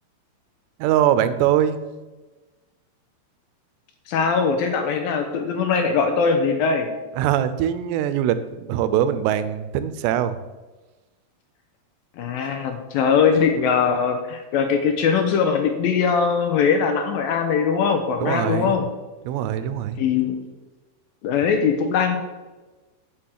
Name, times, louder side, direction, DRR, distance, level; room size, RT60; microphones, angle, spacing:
voice 1, 0.8-1.8 7.2-10.4 18.2-18.8 19.3-20.0, right 10 dB, 85° right, 12 dB, 2.9 m, -22 dB
voice 2, 4.1-6.9 12.2-18.9 20.0-20.4 21.2-22.2, left 6 dB, 75° left, 6 dB, 2.3 m, -21 dB
9.3 x 6.5 x 7.4 m, 1.2 s
omnidirectional pair, 4.8 m